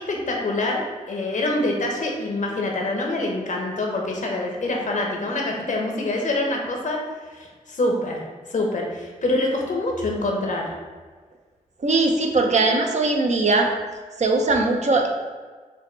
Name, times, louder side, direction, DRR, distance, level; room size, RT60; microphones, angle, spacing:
voice 1, 0.0-7.0 7.4-8.2 8.5-10.7, left 2 dB, 65° left, 0 dB, 0.8 m, -25 dB
voice 2, 11.8-13.7 14.2-15.1, right 3 dB, 55° right, 2 dB, 0.6 m, -20 dB
5.3 x 2.1 x 3.2 m, 1.5 s
cardioid pair, 60°, 14 cm